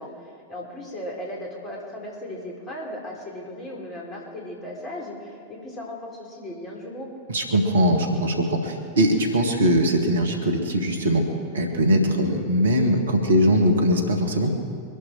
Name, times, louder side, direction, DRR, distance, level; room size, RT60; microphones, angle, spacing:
voice 1, 0.0-7.1, left 1 dB, 25° left, -2 dB, 4.5 m, -36 dB
voice 2, 7.3-11.2 11.5-14.5, equal, 70° right, 3 dB, 2.0 m, -21 dB
24.0 x 11.5 x 4.7 m, 2.4 s
figure-of-eight pair, 90°, 0 cm